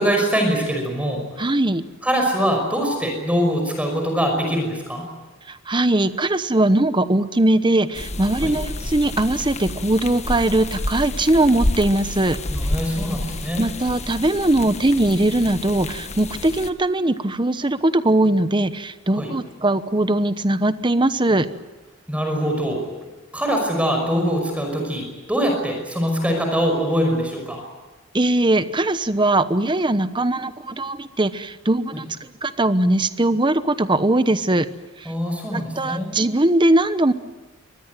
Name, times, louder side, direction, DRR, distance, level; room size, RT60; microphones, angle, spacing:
voice 1, 0.0-1.2 2.0-5.1 8.4-8.5 12.5-13.6 19.2-19.3 22.1-22.9 23.3-27.6 35.1-36.1, equal, 5° right, 3 dB, 5.6 m, -23 dB
voice 2, 1.4-1.8 5.5-12.4 13.6-21.5 28.1-32.1 32.4-34.7 35.0-35.1 35.5-37.1, right 1 dB, 25° right, 13 dB, 1.0 m, -20 dB
sound 1, 7.9-16.7, left 1 dB, 35° left, 1.4 m, -29 dB
24.5 x 20.0 x 9.3 m, 1.2 s
head